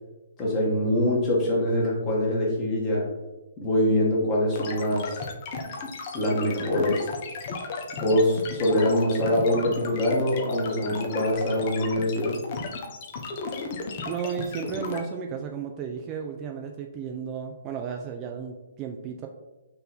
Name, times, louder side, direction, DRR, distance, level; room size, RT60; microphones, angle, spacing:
voice 1, 0.4-3.1 3.6-5.2 6.1-7.1 8.0-12.4, left 1 dB, 25° left, -3 dB, 1.3 m, -24 dB
sound 1, 4.5-15.0, left 4 dB, 40° left, 0.6 m, -35 dB
voice 2, 14.0-19.3, right 7 dB, 25° right, 3 dB, 0.3 m, -34 dB
4.1 x 2.6 x 4.0 m, 1.1 s
figure-of-eight pair, 130°, 0 cm